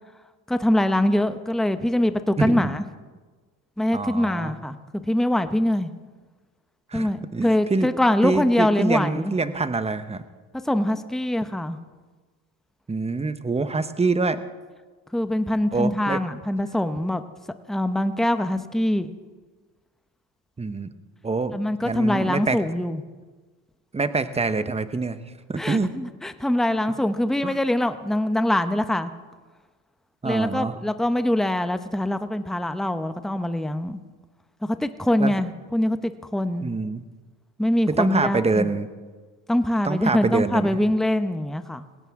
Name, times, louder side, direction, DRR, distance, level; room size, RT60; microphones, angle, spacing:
voice 1, 0.5-2.8 3.8-4.7 5.1-5.9 6.9-9.3 10.7-11.8 15.1-17.2 17.7-19.1 21.5-23.0 25.6-29.1 30.2-34.0 34.6-36.7 37.6-38.7 39.5-41.8, left 1 dB, ahead, 10 dB, 0.8 m, -23 dB
voice 2, 2.4-2.7 3.9-4.5 6.9-7.9 8.2-10.2 12.9-14.4 15.7-16.2 20.6-20.9 21.2-22.6 23.9-25.2 25.5-25.9 27.4-27.6 30.2-30.8 35.2-35.3 36.6-37.0 37.9-38.9 39.8-40.8, right 3 dB, 15° right, 11 dB, 1.1 m, -25 dB
20.5 x 17.0 x 3.7 m, 1.4 s
supercardioid pair, 85°, 36 cm